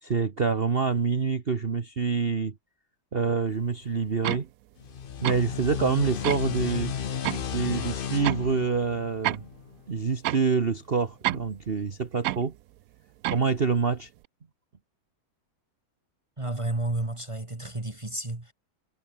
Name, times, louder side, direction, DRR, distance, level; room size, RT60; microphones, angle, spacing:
voice 1, 0.0-2.5 3.1-4.5 5.2-6.9 7.5-9.4 9.9-12.5 13.3-14.1, right 5 dB, 35° right, 1.4 m, -26 dB
sound 1, 4.2-4.5 5.2-5.4 6.2-6.4 7.2-7.4 8.2-8.5 9.2-9.4 10.2-10.4 11.2-11.5 12.2-12.5 13.2-13.5, right 15 dB, 75° right, 0.8 m, -29 dB
sound 2, 4.8-10.1, left 8 dB, 55° left, 0.6 m, -34 dB
voice 2, 16.4-18.5, right 2 dB, 15° right, 1.7 m, -31 dB
omnidirectional pair, 2.0 m